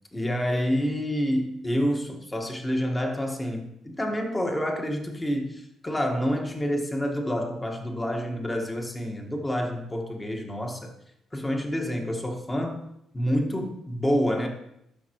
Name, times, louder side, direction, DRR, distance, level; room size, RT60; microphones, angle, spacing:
voice 1, 0.1-10.9 11.3-14.5, equal, 15° left, 3 dB, 1.5 m, -28 dB
12.5 x 5.9 x 3.0 m, 0.78 s
cardioid pair, 90°, 0 cm